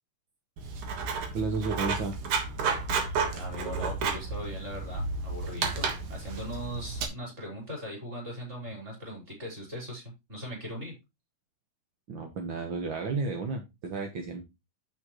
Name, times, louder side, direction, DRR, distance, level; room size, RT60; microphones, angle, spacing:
Writing, 0.6-7.1, right 5 dB, 70° right, 2.9 m, -32 dB
voice 1, 1.3-2.1 12.1-14.4, right 4 dB, 55° right, 4 dB, 1.5 m, -32 dB
voice 2, 3.3-10.9, equal, 20° right, 0 dB, 5.4 m, -39 dB
9.1 x 8.2 x 3.1 m, 0.23 s
omnidirectional pair, 3.8 m